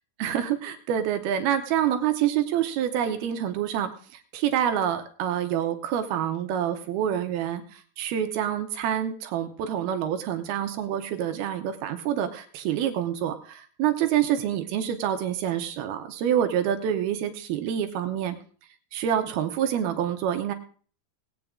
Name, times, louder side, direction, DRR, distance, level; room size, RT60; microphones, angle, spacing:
voice 1, 0.2-3.9 4.3-18.4 18.9-20.5, right 10 dB, 75° right, 6 dB, 2.7 m, -27 dB
19.5 x 8.5 x 3.7 m, 0.42 s
omnidirectional pair, 4.8 m